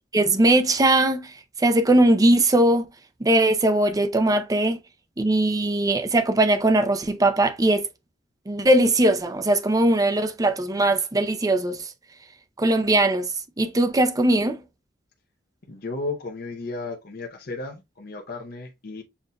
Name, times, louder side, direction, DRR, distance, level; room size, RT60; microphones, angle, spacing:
voice 1, 0.1-1.3 1.6-2.9 3.2-4.8 5.2-7.9 8.5-11.9 12.6-13.3 13.6-14.6, right 1 dB, 20° right, 0.5 m, -20 dB
voice 2, 15.7-19.0, left 3 dB, 55° left, 0.7 m, -34 dB
7.1 x 2.6 x 2.2 m
head